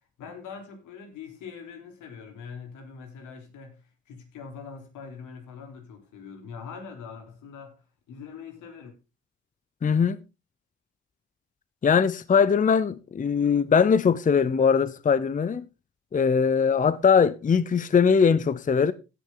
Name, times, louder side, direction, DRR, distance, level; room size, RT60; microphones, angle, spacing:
voice 1, 0.2-7.8 8.1-8.9, left 6 dB, 85° left, 3.4 m, -43 dB
voice 2, 9.8-10.2 11.8-15.6 16.1-18.9, left 6 dB, 25° left, 0.6 m, -21 dB
16.0 x 6.4 x 3.8 m
cardioid pair, 90°, 30 cm